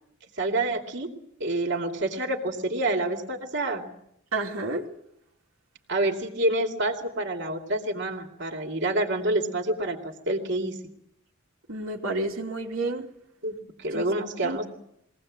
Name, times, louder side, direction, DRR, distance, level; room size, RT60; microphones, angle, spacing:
voice 1, 0.4-1.1 1.4-3.8 5.9-10.7 13.4-14.7, right 2 dB, 60° right, 3 dB, 2.7 m, -28 dB
voice 2, 4.3-4.9 11.7-13.1 13.9-14.0 14.4-14.6, right 2 dB, 90° right, -1 dB, 2.7 m, -30 dB
23.0 x 18.0 x 7.7 m, 0.75 s
head